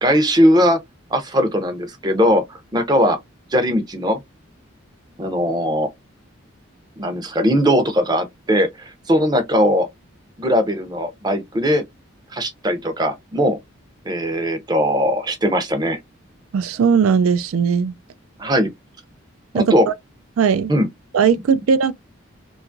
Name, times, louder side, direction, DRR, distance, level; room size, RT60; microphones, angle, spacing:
voice 1, 0.0-0.8 1.1-3.2 3.5-4.2 5.2-5.9 7.0-9.9 10.4-11.8 12.3-13.6 14.1-16.0 18.4-18.7 19.5-19.9 20.7-20.9, equal, 20° right, 0.5 m, -19 dB
voice 2, 16.5-17.9 19.5-19.9 20.4-20.7 21.1-21.9, right 6 dB, 85° right, 0.3 m, -18 dB
2.8 x 2.3 x 2.5 m
head